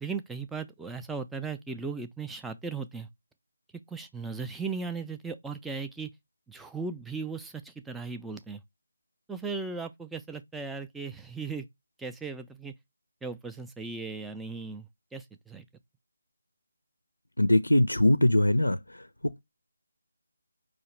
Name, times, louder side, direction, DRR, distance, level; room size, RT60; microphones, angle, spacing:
voice 1, 0.0-3.1 3.9-6.1 6.5-8.6 9.3-11.7 12.0-12.7 13.2-15.7, right 4 dB, 5° right, 0.3 m, -37 dB
voice 2, 17.4-19.4, left 1 dB, 85° left, 0.4 m, -23 dB
4.8 x 2.5 x 3.0 m
figure-of-eight pair, 155°, 0 cm